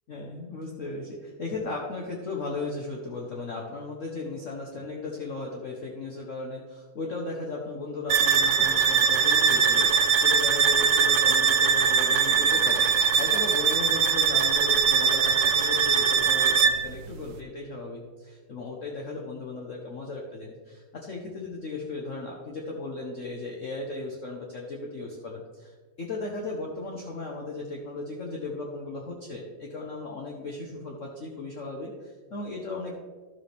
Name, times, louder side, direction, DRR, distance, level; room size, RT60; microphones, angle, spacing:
voice 1, 0.1-12.8 13.2-32.9, left 3 dB, 50° left, -1 dB, 1.2 m, -36 dB
sound 1, 8.1-16.9, right 6 dB, 70° right, 1.0 m, -22 dB
12.0 x 7.4 x 3.4 m, 1.4 s
omnidirectional pair, 2.0 m